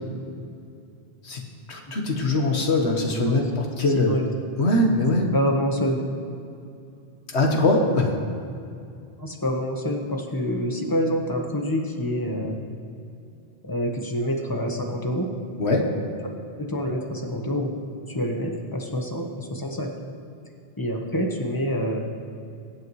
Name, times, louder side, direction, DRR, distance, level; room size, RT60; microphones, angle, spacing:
voice 1, 1.7-4.2 4.6-5.3 7.3-8.1 15.6-15.9, left 2 dB, 85° left, 1 dB, 1.7 m, -22 dB
voice 2, 3.9-4.3 5.3-6.0 9.2-12.6 13.6-15.3 16.6-17.7 18.1-19.9 20.8-22.0, equal, 20° left, 1 dB, 1.2 m, -27 dB
22.5 x 8.2 x 3.2 m, 2.6 s
omnidirectional pair, 1.1 m